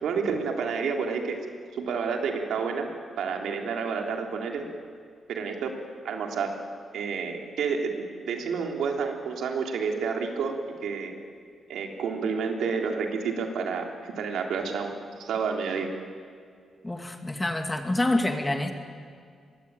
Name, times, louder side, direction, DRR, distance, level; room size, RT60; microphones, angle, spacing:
voice 1, 0.0-1.4 1.7-2.9 3.2-4.7 5.3-5.8 6.0-6.6 6.9-10.5 10.8-11.1 11.7-15.9, right 5 dB, 90° right, 2 dB, 3.5 m, -29 dB
voice 2, 16.8-18.7, left 1 dB, 15° left, 5 dB, 2.5 m, -27 dB
25.0 x 21.5 x 9.1 m, 2.2 s
cardioid pair, 105°, 0 cm